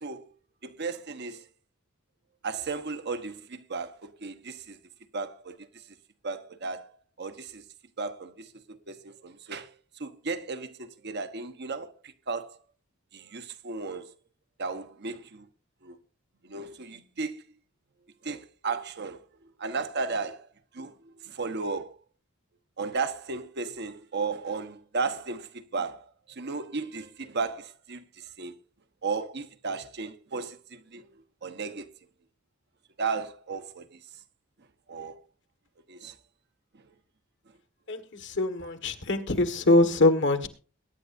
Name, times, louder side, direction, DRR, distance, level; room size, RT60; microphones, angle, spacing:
voice 1, 0.0-0.3 0.6-1.4 2.4-4.8 5.1-5.6 6.2-6.9 7.2-7.6 8.0-9.7 10.0-12.6 13.1-14.1 14.6-15.5 15.8-16.0 16.4-17.4 18.2-19.2 19.6-20.5 20.7-20.9 21.2-21.9 22.8-28.5 29.0-31.0 31.4-31.9 33.0-33.9 34.9-35.2 35.9-36.1, right 4 dB, 55° right, 1.1 m, -34 dB
voice 2, 37.9-40.5, left 2 dB, 60° left, 1.7 m, -23 dB
22.0 x 10.0 x 2.6 m
head